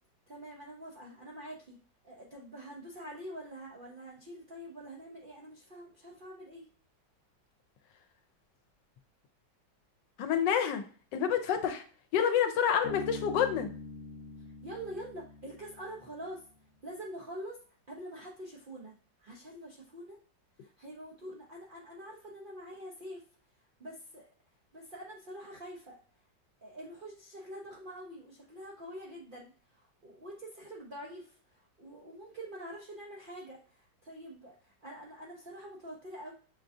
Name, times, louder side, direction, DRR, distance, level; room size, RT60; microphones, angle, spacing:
voice 1, 0.3-1.8 2.0-6.6 14.6-16.4 16.8-17.6 17.9-18.9 19.2-20.2 20.6-23.2 23.8-24.3 24.7-26.0 26.6-36.3, right 1 dB, 60° right, -4 dB, 0.5 m, -45 dB
voice 2, 10.2-10.8 11.1-11.8 12.1-13.7, left 8 dB, 80° left, 8 dB, 1.2 m, -28 dB
Bass guitar, 12.8-16.3, left 4 dB, 55° left, 0.9 m, -44 dB
6.3 x 2.4 x 2.6 m, 0.43 s
omnidirectional pair, 1.9 m